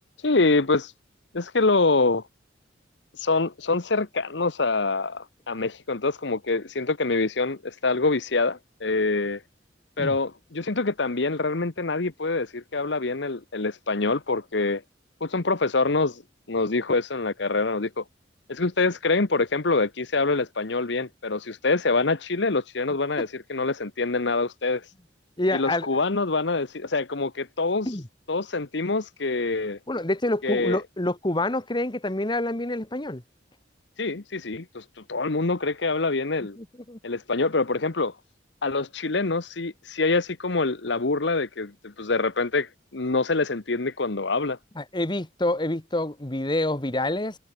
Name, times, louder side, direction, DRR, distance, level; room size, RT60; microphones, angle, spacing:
voice 1, 0.2-0.9 1.3-2.2 3.2-9.4 10.0-14.8 15.2-16.2 16.5-18.0 18.5-24.8 25.5-27.9 28.3-29.8 30.4-30.8 34.0-36.6 37.0-38.1 38.6-44.6, left 3 dB, 70° left, 1.1 m, -25 dB
voice 2, 25.4-25.9 27.8-28.0 29.9-33.2 36.6-37.0 44.7-47.4, left 1 dB, 25° left, 1.5 m, -27 dB
head